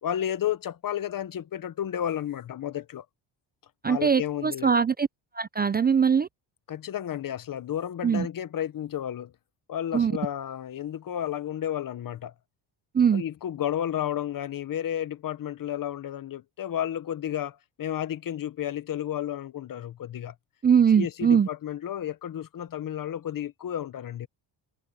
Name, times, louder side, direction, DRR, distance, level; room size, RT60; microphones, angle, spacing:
voice 1, 0.0-3.0 3.9-4.7 6.7-9.3 9.7-12.3 13.1-20.3 21.0-24.3, left 10 dB, 50° left, 1.0 m, -32 dB
voice 2, 3.8-5.1 5.3-6.3 8.0-8.3 9.9-10.1 12.9-13.2 20.6-21.5, right 7 dB, 20° right, 0.4 m, -21 dB
cardioid pair, 110°, 45 cm